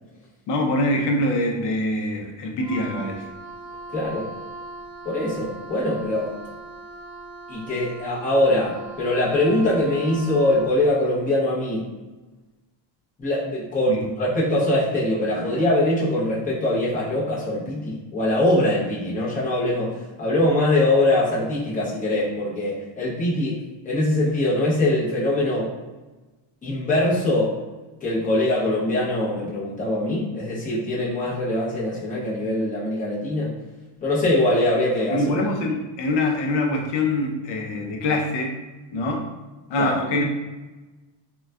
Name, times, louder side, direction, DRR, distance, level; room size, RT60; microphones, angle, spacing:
voice 1, 0.5-3.2 13.9-14.0 35.1-38.6 38.9-39.3 39.7-40.2, left 1 dB, 60° left, 1 dB, 0.6 m, -24 dB
Wind instrument woodwind instrument, 2.6-10.8, right 2 dB, 55° right, 0.8 m, -39 dB
voice 2, 3.9-4.3 5.0-6.3 7.5-11.9 13.2-25.7 26.6-27.6 28.0-33.5 34.0-35.2 39.8-39.9, left 1 dB, 15° left, -7 dB, 0.6 m, -22 dB
3.8 x 2.2 x 2.2 m, 1.2 s
cardioid pair, 180°, 48 cm